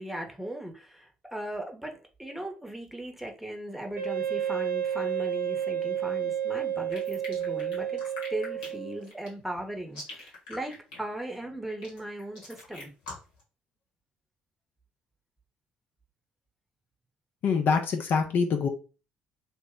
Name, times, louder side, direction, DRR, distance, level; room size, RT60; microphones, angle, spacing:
voice 1, 0.0-8.0 8.3-12.9, right 1 dB, 5° right, 0.9 m, -38 dB
Wind instrument woodwind instrument, 4.0-9.0, right 9 dB, 55° right, 0.8 m, -31 dB
sound 1, 6.9-13.4, left 2 dB, 80° left, 1.2 m, -43 dB
voice 2, 17.4-18.7, left 5 dB, 50° left, 0.5 m, -25 dB
2.8 x 2.1 x 3.5 m
figure-of-eight pair, 50°, 4 cm